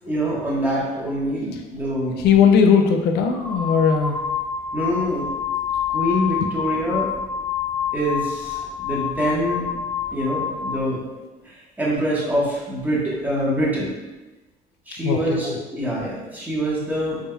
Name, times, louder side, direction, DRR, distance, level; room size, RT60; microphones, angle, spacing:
voice 1, 0.0-2.1 4.7-5.3 5.9-7.1 7.9-9.6 10.1-13.9 14.9-17.2, equal, 10° right, -6 dB, 1.3 m, -25 dB
voice 2, 2.2-4.2 6.5-6.6 15.0-15.6, left 6 dB, 75° left, 4 dB, 0.4 m, -18 dB
sound 1, 2.2-2.4 3.2-10.9, left 7 dB, 10° left, 0.8 m, -27 dB
4.0 x 3.6 x 2.3 m, 1.1 s
cardioid pair, 110°, 17 cm